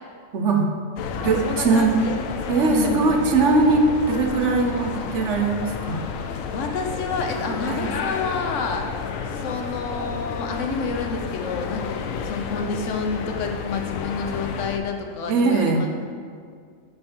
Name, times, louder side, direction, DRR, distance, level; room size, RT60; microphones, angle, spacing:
voice 1, 0.3-0.7 1.2-2.0 2.5-6.1 7.7-7.9 15.3-15.9, right 3 dB, 65° right, 3 dB, 1.0 m, -20 dB
sound 1, 1.0-14.8, left 6 dB, 90° left, 1.0 m, -31 dB
voice 2, 1.4-2.2 2.7-3.1 6.5-8.9 9.3-15.9, left 4 dB, 70° left, 4 dB, 1.1 m, -29 dB
6.5 x 5.9 x 4.6 m, 2.1 s
omnidirectional pair, 1.4 m